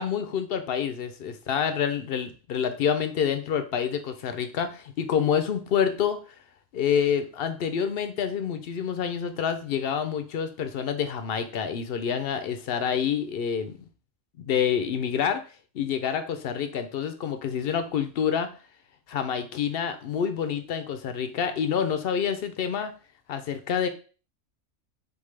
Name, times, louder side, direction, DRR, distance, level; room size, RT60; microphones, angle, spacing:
voice 1, 0.0-6.2 6.7-13.8 14.4-15.4 15.7-18.5 19.1-22.9 23.3-23.9, left 7 dB, 65° left, 9 dB, 0.6 m, -27 dB
4.1 x 3.6 x 3.2 m, 0.37 s
omnidirectional pair, 1.4 m